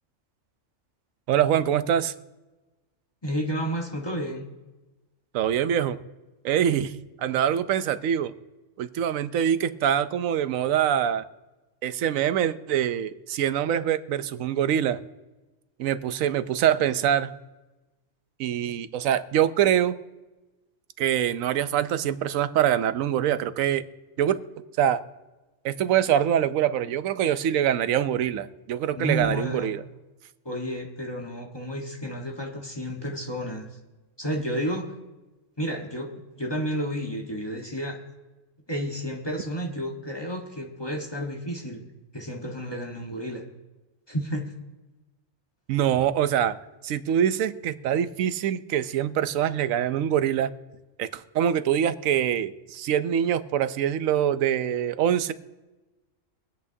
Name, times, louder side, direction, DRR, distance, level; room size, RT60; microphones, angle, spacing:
voice 1, 1.3-2.1 5.3-6.0 6.4-6.9 7.2-8.3 8.8-11.2 11.8-15.0 15.8-17.3 18.4-20.0 21.0-23.8 24.2-24.4 24.8-25.0 25.6-29.8 45.7-46.6 46.8-50.5 51.0-55.3, right 10 dB, 90° right, 13 dB, 1.0 m, -24 dB
voice 2, 3.2-4.5 29.0-29.7 30.4-33.7 34.2-34.9 35.6-36.1 36.3-38.0 38.7-41.8 42.1-43.4 44.1-44.5, equal, 20° left, 0 dB, 1.2 m, -31 dB
24.5 x 8.5 x 2.7 m, 1.1 s
omnidirectional pair, 1.3 m